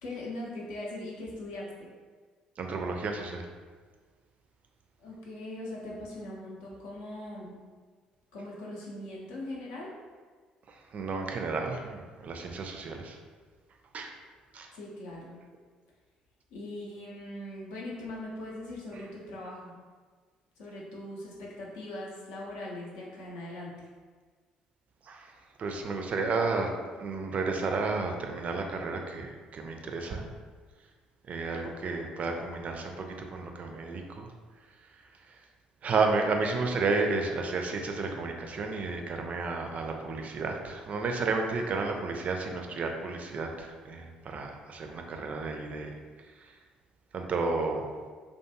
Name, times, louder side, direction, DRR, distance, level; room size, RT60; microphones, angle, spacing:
voice 1, 0.0-1.9 5.0-7.6 8.3-9.9 14.7-15.4 16.5-19.7 20.6-23.7, left 1 dB, 70° left, -4 dB, 0.6 m, -40 dB
voice 2, 2.6-3.5 10.7-13.2 13.9-14.2 14.5-14.7 25.1-25.3 25.6-26.7 27.0-30.3 31.3-34.3 35.8-45.9 46.4-46.5 47.1-47.8, right 3 dB, 45° right, 3 dB, 0.3 m, -32 dB
2.4 x 2.3 x 2.7 m, 1.5 s
hypercardioid pair, 50°, 3 cm